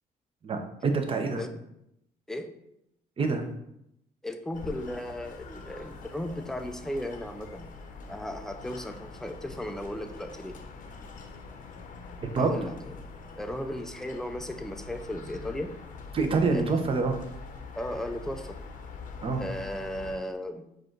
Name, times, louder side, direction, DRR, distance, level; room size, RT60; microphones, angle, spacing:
voice 1, 0.4-1.4 3.2-3.5 12.2-12.5 16.1-17.2 19.2-19.4, right 4 dB, 35° right, 5 dB, 0.7 m, -26 dB
voice 2, 4.2-7.7 8.1-10.6 12.4-13.1 13.4-15.8 16.5-16.8 17.8-18.6 19.4-20.7, left 1 dB, 5° left, 7 dB, 0.4 m, -36 dB
sound 1, 4.5-20.2, left 4 dB, 50° left, 0.7 m, -44 dB
4.8 x 2.4 x 4.5 m, 0.81 s
cardioid pair, 110°, 17 cm